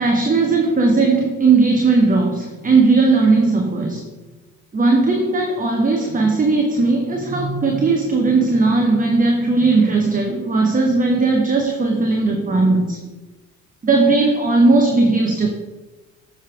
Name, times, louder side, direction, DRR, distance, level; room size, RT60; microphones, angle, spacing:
voice 1, 0.0-4.0 4.7-13.0 13.8-15.5, right 3 dB, 20° right, 2 dB, 0.8 m, -17 dB
7.2 x 3.4 x 4.7 m, 1.2 s
figure-of-eight pair, 50°, 41 cm